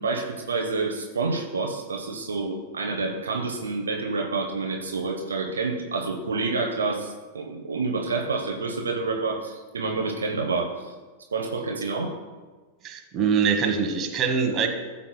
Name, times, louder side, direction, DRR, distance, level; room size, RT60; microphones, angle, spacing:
voice 1, 0.0-10.9 11.3-12.1, right 3 dB, 70° right, 2 dB, 0.9 m, -28 dB
voice 2, 12.8-14.7, right 6 dB, 30° right, 4 dB, 1.3 m, -23 dB
14.0 x 7.0 x 2.3 m, 1.3 s
figure-of-eight pair, 90°, 0 cm